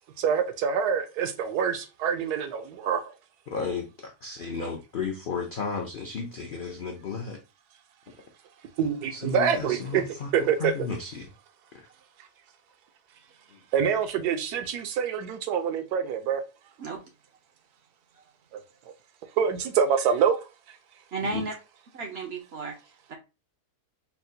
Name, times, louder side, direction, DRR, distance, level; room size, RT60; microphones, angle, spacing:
voice 1, 0.2-3.1 8.8-10.0 10.3-10.7 13.7-16.4 18.9-19.0 19.4-20.4, right 7 dB, 85° right, 1.1 m, -26 dB
voice 2, 3.5-7.4 9.1-11.3 13.5-13.6 21.2-21.4, left 5 dB, 70° left, 0.5 m, -34 dB
voice 3, 21.1-21.6 21.9-22.7 23.1-23.2, right 4 dB, 65° right, 0.6 m, -33 dB
4.6 x 2.1 x 2.6 m
omnidirectional pair, 1.7 m